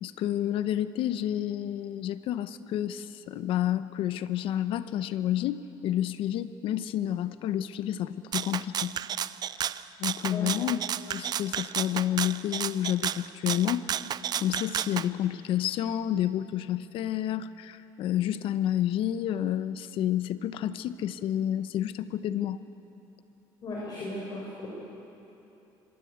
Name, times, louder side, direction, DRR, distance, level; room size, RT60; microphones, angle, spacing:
voice 1, 0.0-8.9 10.0-10.8 11.1-13.8 14.4-22.6, left 11 dB, 70° left, 13 dB, 0.9 m, -29 dB
Rattle (instrument), 8.3-15.1, right 9 dB, 45° right, 0.6 m, -32 dB
voice 2, 23.6-24.7, left 2 dB, 45° left, -4 dB, 6.1 m, -36 dB
25.5 x 22.0 x 8.2 m, 3.0 s
cardioid pair, 110°, 9 cm